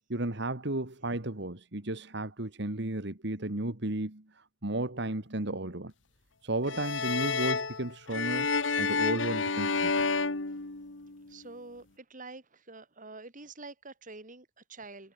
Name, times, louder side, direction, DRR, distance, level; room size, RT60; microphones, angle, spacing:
voice 1, 0.1-5.9 6.4-8.5 8.8-10.0, right 2 dB, 65° right, 2.3 m, -34 dB
sound 1, 6.7-11.3, left 4 dB, 85° left, 1.9 m, -30 dB
voice 2, 11.3-15.1, right 3 dB, 45° right, 4.4 m, -47 dB
head